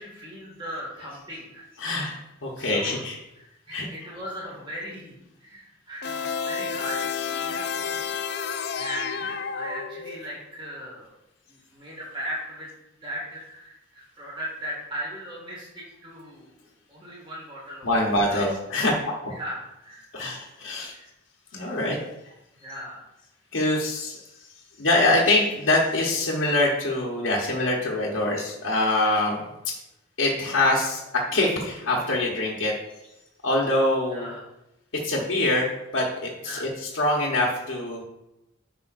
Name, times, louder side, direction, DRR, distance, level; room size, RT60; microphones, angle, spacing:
voice 1, 0.0-1.7 2.1-2.2 2.5-3.0 3.4-11.1 11.5-18.4 19.3-20.2 20.9-21.1 21.5-22.1 22.5-23.0 34.1-34.4 36.4-36.7, equal, 25° right, -4 dB, 2.0 m, -38 dB
voice 2, 1.7-2.1 2.4-3.2 3.7-4.1 8.3-8.4 17.8-19.3 20.1-20.9 21.5-22.0 23.5-24.2 24.8-29.4 30.2-32.7 33.4-34.4 35.0-38.0, left 2 dB, 80° left, -4 dB, 1.1 m, -24 dB
sound 1, 6.0-10.4, left 6 dB, 55° left, 0.4 m, -30 dB
9.9 x 5.5 x 2.6 m, 0.90 s
head